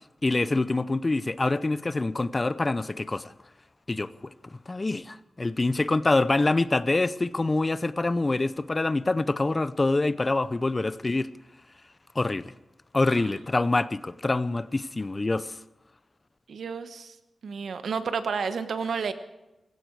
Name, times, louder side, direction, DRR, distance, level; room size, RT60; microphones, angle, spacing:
voice 1, 0.2-3.3 3.9-4.1 4.5-11.3 12.1-12.5 12.9-15.6, left 2 dB, 30° left, 0.7 m, -25 dB
voice 2, 16.5-17.2 17.4-19.1, right 5 dB, 85° right, 1.2 m, -31 dB
19.0 x 16.0 x 4.8 m
wide cardioid pair, 80°, 0 cm